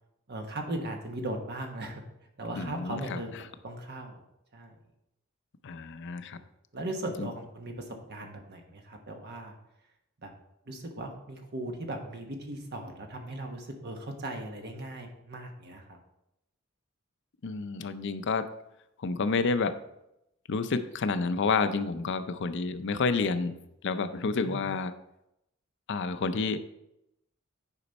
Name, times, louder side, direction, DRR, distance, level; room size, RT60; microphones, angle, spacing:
voice 1, 0.3-2.0 2.4-4.2 4.5-4.7 6.3-6.4 6.7-9.5 10.2-10.3 10.7-16.0 24.2-24.6, right 1 dB, 50° right, 3 dB, 1.3 m, -38 dB
voice 2, 2.5-3.2 5.6-6.4 7.2-7.3 17.4-18.5 19.0-19.8 20.5-23.5 23.8-24.9 25.9-26.6, left 4 dB, 60° left, 11 dB, 0.5 m, -29 dB
9.9 x 5.2 x 4.1 m, 0.84 s
head